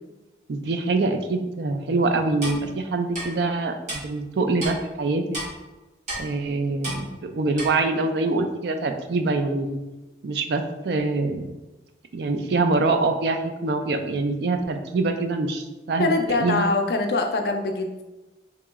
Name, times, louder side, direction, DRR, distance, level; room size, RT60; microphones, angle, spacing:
voice 1, 0.5-5.2 6.2-9.8 10.2-11.5 12.1-16.1 16.4-16.7, right 3 dB, 60° right, 6 dB, 0.3 m, -24 dB
Clock, 2.4-2.6 3.1-3.2 3.9-4.0 4.6-4.7 5.3-5.5 6.1-6.2 6.8-7.0 7.6-7.7, right 1 dB, 40° right, 1.1 m, -31 dB
voice 2, 16.0-18.0, left 3 dB, 55° left, 5 dB, 0.4 m, -23 dB
3.0 x 2.9 x 3.5 m, 1.1 s
head